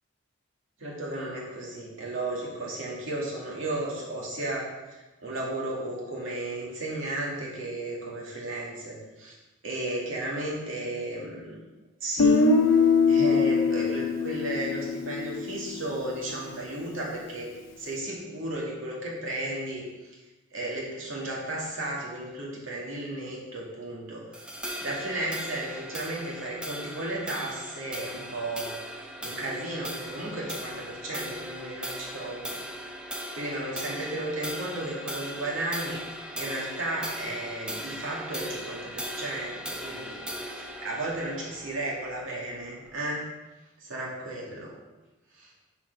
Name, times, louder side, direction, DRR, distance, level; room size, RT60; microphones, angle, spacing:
voice 1, 0.8-9.3 9.6-11.6 12.0-12.5 13.1-17.5 17.8-19.9 20.5-24.3 24.8-28.8 29.2-32.6 33.3-36.0 36.3-43.3 43.8-44.7 45.4-45.5, right 1 dB, 80° right, -4 dB, 2.3 m, -34 dB
Guitar, 12.2-16.1, left 4 dB, 80° left, 0.7 m, -23 dB
sound 1, 24.3-42.9, equal, 5° right, 0.7 m, -38 dB
6.7 x 5.9 x 5.5 m, 1.1 s
head